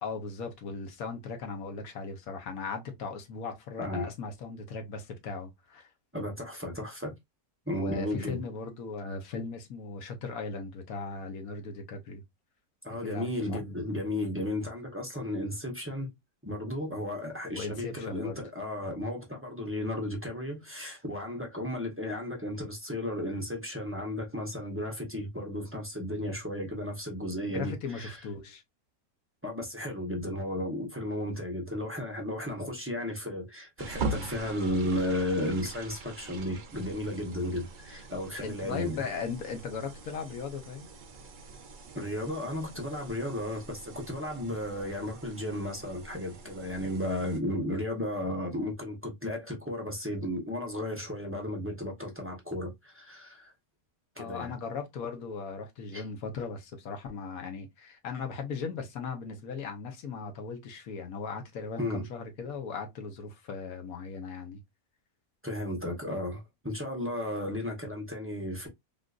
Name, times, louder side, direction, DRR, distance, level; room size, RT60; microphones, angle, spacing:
voice 1, 0.0-5.9 7.7-12.2 13.0-13.6 17.5-18.4 27.5-28.6 38.4-40.9 54.2-64.6, left 5 dB, 70° left, 1.3 m, -38 dB
voice 2, 6.1-7.1 7.7-8.4 12.8-16.1 16.4-28.2 29.4-39.0 41.9-53.5 54.2-54.5 55.9-56.0 61.8-62.0 65.4-68.7, left 1 dB, 15° right, 0.5 m, -34 dB
sound 1, 33.8-47.4, right 3 dB, 75° right, 0.4 m, -42 dB
3.7 x 2.5 x 2.4 m
omnidirectional pair, 1.6 m